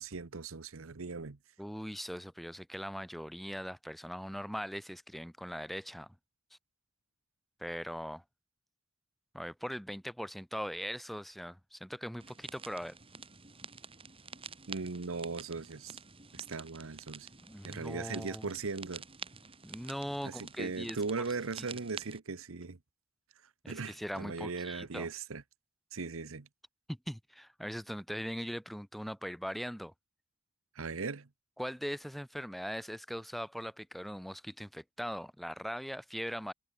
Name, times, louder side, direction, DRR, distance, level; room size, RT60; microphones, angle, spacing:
voice 1, 0.0-1.4 14.7-16.0 16.3-17.3 17.6-19.0 20.2-22.8 23.7-25.4 25.9-26.5 30.8-31.3, right 4 dB, 75° right, 0.9 m, -38 dB
voice 2, 1.6-6.1 7.6-8.2 9.3-12.9 17.5-18.5 19.6-21.0 21.6-21.7 23.6-25.1 26.9-29.9 31.6-36.5, equal, ahead, 1.2 m, -40 dB
sound 1, 12.2-22.2, right 5 dB, 25° right, 3.7 m, -49 dB
head